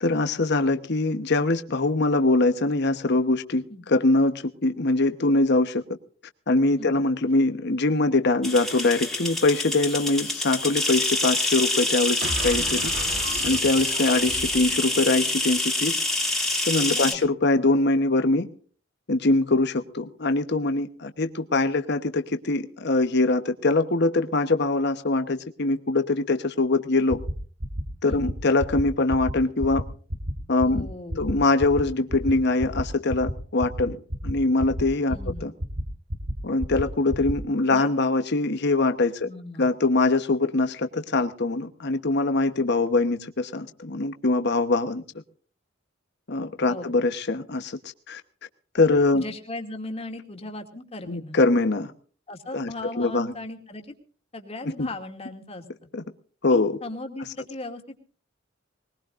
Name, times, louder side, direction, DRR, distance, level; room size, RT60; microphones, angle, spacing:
voice 1, 0.0-3.6 3.9-5.8 6.5-12.9 13.4-16.0 16.7-18.5 19.1-27.2 28.0-29.8 30.5-30.9 31.2-35.1 35.4-35.5 36.4-39.3 39.6-45.0 46.3-47.8 48.1-48.2 48.7-49.2 51.1-51.9 52.5-52.7 53.0-53.3 54.8-54.9 55.9-56.0 56.4-56.8, left 2 dB, 60° left, 1.1 m, -23 dB
sound 1, 8.4-17.1, left 2 dB, ahead, 2.6 m, -26 dB
sound 2, 12.2-15.6, right 2 dB, 60° right, 1.5 m, -35 dB
voice 2, 16.9-17.2 28.0-28.2 30.6-31.3 35.1-35.4 37.7-37.9 39.2-39.7 46.7-46.9 49.1-51.4 52.3-53.9 54.3-55.6 56.5-58.0, left 2 dB, 30° left, 2.5 m, -37 dB
sound 3, 27.1-27.3 27.6-27.8 28.1-28.3 28.6-28.8 29.1-29.3 29.6-29.8 30.1-30.3 30.6-30.8 31.1-31.3 31.6-31.8 32.1-32.3 32.6-32.8 33.1-33.3 33.6-33.8 34.1-34.3 34.6-34.8 35.1-35.3 35.6-35.8 36.1-36.3 36.6-36.8 37.1-37.3, equal, 80° right, 3.3 m, -29 dB
21.5 x 20.5 x 2.5 m
head